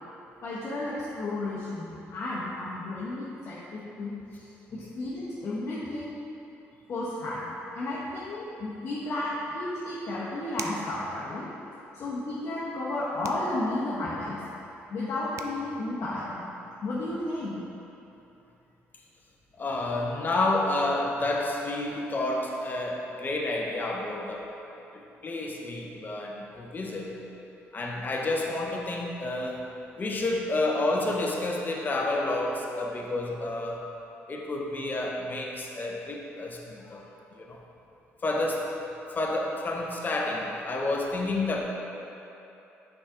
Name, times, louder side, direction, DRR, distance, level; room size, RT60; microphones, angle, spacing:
voice 1, 0.4-6.1 6.9-11.5 11.9-14.4 14.9-16.4 16.8-17.6, left 2 dB, 55° left, -8 dB, 1.1 m, -33 dB
sound 1, 10.6-11.0 13.2-13.5 15.0-15.1 15.4-15.6, right 7 dB, 65° right, 0.4 m, -40 dB
voice 2, 19.6-24.5 24.9-27.1 27.7-29.6 30.0-33.8 34.3-37.0 37.4-37.6 38.2-38.7 39.1-41.6, left 2 dB, 35° left, -1 dB, 1.0 m, -30 dB
6.2 x 5.0 x 3.7 m, 2.9 s
supercardioid pair, 75°, 5 cm